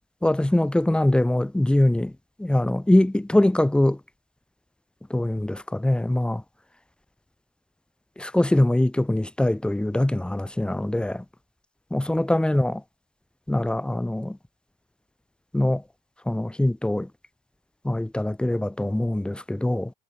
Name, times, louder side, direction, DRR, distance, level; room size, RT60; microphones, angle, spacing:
voice 1, 0.2-2.1 2.4-4.0 5.1-6.4 8.2-11.2 11.9-12.7 13.5-14.4 15.5-15.8 16.3-17.1 17.8-19.9, left 1 dB, 5° left, 2.9 m, -22 dB
cardioid pair, 120°, 17 cm